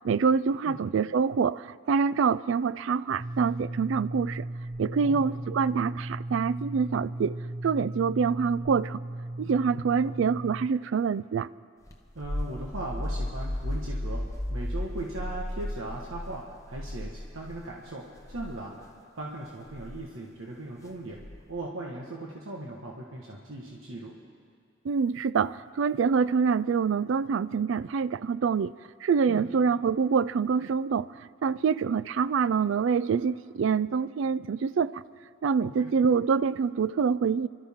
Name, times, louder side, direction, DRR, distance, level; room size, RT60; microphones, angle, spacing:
voice 1, 0.0-4.5 4.8-7.3 7.6-9.0 9.4-11.5 24.8-28.7 29.0-35.0 35.4-37.5, right 6 dB, 70° right, 18 dB, 0.3 m, -26 dB
sound 1, 3.2-10.7, right 1 dB, 40° right, 1.0 m, -36 dB
voice 2, 5.0-5.4 12.1-14.2 14.5-21.2 21.5-24.1 29.3-29.5 35.6-35.9, right 2 dB, 85° right, -2 dB, 1.5 m, -38 dB
sound 2, 11.9-17.7 18.2-18.5 19.7-20.0 21.2-21.6, left 1 dB, 15° left, 0.9 m, -34 dB
29.5 x 13.0 x 3.7 m, 2.2 s
head